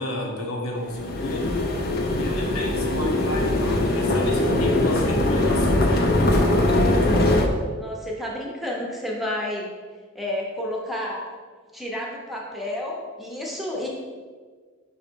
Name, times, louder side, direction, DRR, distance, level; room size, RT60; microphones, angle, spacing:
voice 1, 0.0-1.6 2.1-6.4, left 1 dB, 90° left, 0 dB, 1.2 m, -31 dB
sound 1, 0.9-7.5, left 1 dB, 45° left, 0.6 m, -21 dB
voice 2, 7.8-9.7 10.1-11.3 11.7-13.9, left 1 dB, ahead, -2 dB, 0.8 m, -30 dB
5.5 x 4.0 x 4.5 m, 1.5 s
head